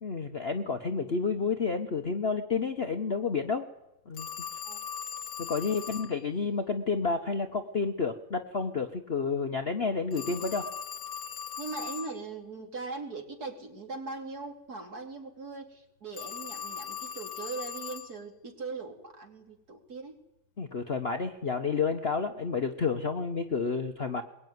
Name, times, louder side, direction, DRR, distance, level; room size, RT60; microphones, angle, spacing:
voice 1, 0.0-3.7 4.1-4.3 5.4-10.7 20.6-24.2, left 5 dB, 40° left, 6 dB, 0.9 m, -30 dB
Telephone, 4.2-6.1 10.1-12.2 16.1-18.1, left 7 dB, 65° left, 1.7 m, -39 dB
voice 2, 5.7-6.1 7.3-7.4 11.6-20.2, right 3 dB, 50° right, 3 dB, 3.2 m, -40 dB
21.5 x 21.5 x 9.4 m, 0.92 s
omnidirectional pair, 2.1 m